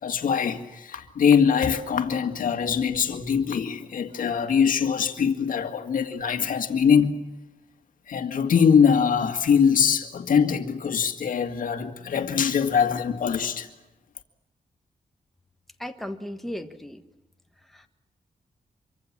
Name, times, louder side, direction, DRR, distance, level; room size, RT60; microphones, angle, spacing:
voice 1, 0.0-7.2 8.1-13.7, left 7 dB, 80° left, 2.0 m, -22 dB
voice 2, 15.8-17.0 17.7-17.9, left 1 dB, ahead, 1.5 m, -36 dB
26.0 x 24.0 x 7.4 m
wide cardioid pair, 125°, 14 cm